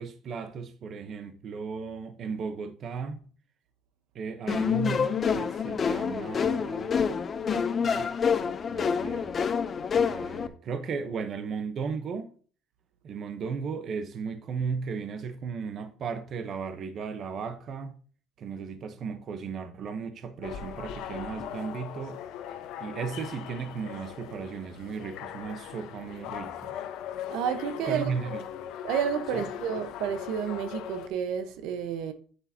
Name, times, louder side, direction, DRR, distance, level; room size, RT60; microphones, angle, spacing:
voice 1, 0.0-3.2 4.1-6.9 7.8-8.2 8.7-9.4 9.9-12.3 13.0-18.0 18.4-22.2 22.8-26.8 27.9-28.4 29.3-29.5, right 5 dB, 40° right, 0.9 m, -35 dB
sound 1, 4.5-10.5, left 6 dB, 25° left, 0.6 m, -27 dB
sound 2, 20.4-31.1, left 10 dB, 70° left, 0.9 m, -39 dB
voice 2, 27.3-28.1 28.8-32.1, right 8 dB, 75° right, 1.0 m, -30 dB
8.3 x 7.8 x 2.8 m
cardioid pair, 165°, 0 cm